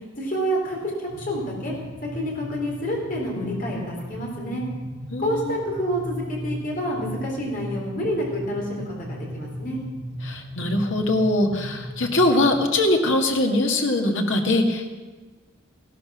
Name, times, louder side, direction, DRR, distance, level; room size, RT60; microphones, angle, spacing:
voice 1, 0.2-1.7 2.0-4.7 5.2-9.8, equal, 40° left, -2 dB, 3.7 m, -28 dB
sound 1, 1.1-12.6, equal, 55° right, 3.1 m, -36 dB
voice 2, 5.1-5.6 10.2-14.9, left 1 dB, 70° left, 3 dB, 1.9 m, -22 dB
15.5 x 12.0 x 6.2 m, 1.3 s
head